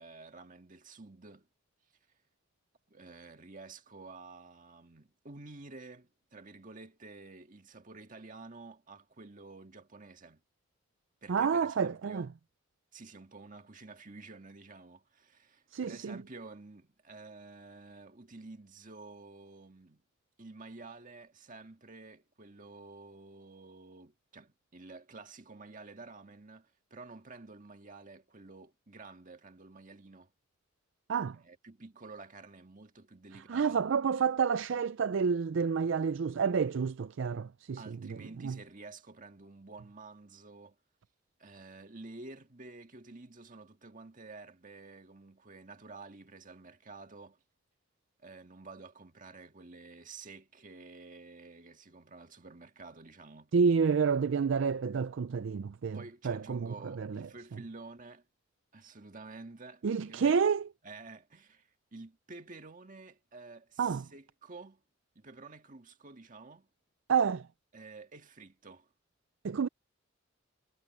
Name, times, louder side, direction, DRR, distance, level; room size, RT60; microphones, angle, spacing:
voice 1, 0.0-1.5 2.9-10.4 11.2-12.3 12.9-20.0 20.4-30.3 31.4-33.8 37.8-40.8 41.4-47.4 48.2-53.5 55.9-58.3 58.7-60.4 60.8-64.8 65.2-66.7 67.7-68.9, right 3 dB, 40° right, 1.7 m, -50 dB
voice 2, 11.3-12.3 15.7-16.1 31.1-31.4 33.5-37.8 38.4-38.6 53.5-56.0 56.2-57.2 59.8-60.7 63.8-64.0 67.1-67.5 69.4-69.7, right 6 dB, 65° right, 0.4 m, -29 dB
head